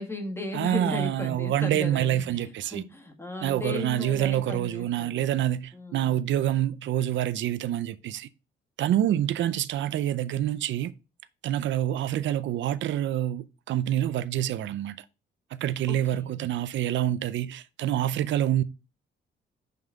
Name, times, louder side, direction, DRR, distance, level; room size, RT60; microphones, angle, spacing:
voice 1, 0.0-5.2 5.7-6.2 9.1-9.5 15.9-16.3, left 2 dB, 10° left, 2.0 m, -36 dB
voice 2, 0.5-2.8 3.4-8.3 8.8-10.9 11.4-15.0 15.6-18.6, right 12 dB, 70° right, 0.6 m, -27 dB
5.7 x 5.6 x 3.6 m
cardioid pair, 90°, 20 cm